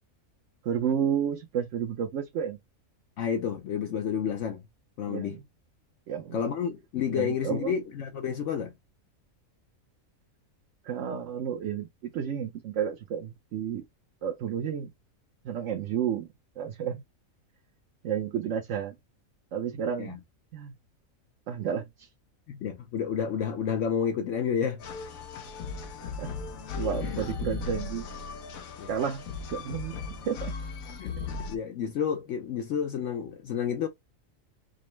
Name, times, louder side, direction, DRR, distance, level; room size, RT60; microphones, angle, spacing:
voice 1, 0.6-2.6 5.1-5.4 6.1-6.4 7.1-7.7 10.8-11.9 12.1-13.8 14.2-14.9 15.4-16.3 16.6-17.0 18.0-19.0 19.5-20.2 20.5-20.7 21.5-22.1 26.0-26.3 26.8-28.1 28.9-29.2 29.5-30.5, right 8 dB, 65° right, 1.0 m, -31 dB
voice 2, 3.2-4.6 5.0-5.4 6.3-8.7 20.0-20.2 22.5-24.8 27.0-27.2 28.8-28.9 31.0-33.9, left 7 dB, 70° left, 0.9 m, -30 dB
sound 1, 24.8-31.5, left 4 dB, 85° left, 1.2 m, -37 dB
5.1 x 2.1 x 3.2 m
omnidirectional pair, 1.4 m